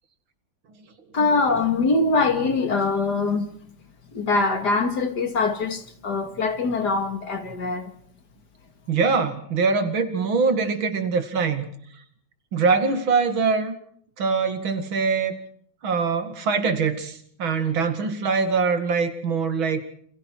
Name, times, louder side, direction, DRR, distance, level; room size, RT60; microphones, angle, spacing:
voice 1, 1.1-3.5 4.1-7.9, left 3 dB, 55° left, 2.7 m, -23 dB
voice 2, 8.9-11.7 12.5-13.7 14.2-15.3 15.8-19.8, right 5 dB, 85° right, 3.0 m, -23 dB
28.5 x 26.5 x 4.7 m
omnidirectional pair, 2.1 m